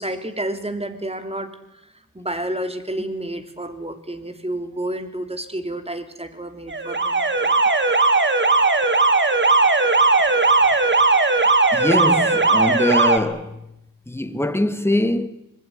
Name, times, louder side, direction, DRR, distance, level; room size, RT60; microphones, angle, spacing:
voice 1, 0.0-1.5 1.8-7.7, right 1 dB, 20° right, 3.2 m, -30 dB
Alarm, 6.7-13.2, right 3 dB, 35° right, 2.3 m, -17 dB
voice 2, 11.7-13.7 14.1-15.3, left 1 dB, 5° left, 1.9 m, -22 dB
25.5 x 20.5 x 9.5 m
wide cardioid pair, 80°, 32 cm